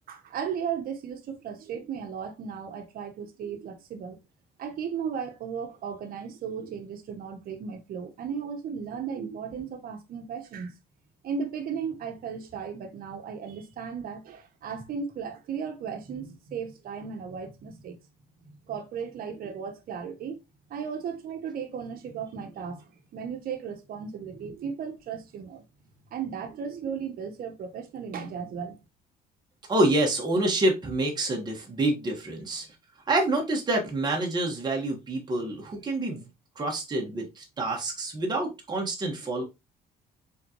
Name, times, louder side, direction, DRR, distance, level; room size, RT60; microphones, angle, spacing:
voice 1, 0.1-4.2 4.6-10.7 11.2-18.0 18.7-20.4 20.7-25.6 26.1-28.8, right 7 dB, 60° right, 1.2 m, -35 dB
voice 2, 29.7-32.6 33.1-36.3 36.5-39.4, right 2 dB, 25° right, 1.4 m, -27 dB
4.3 x 3.8 x 3.0 m
cardioid pair, 110°, 17 cm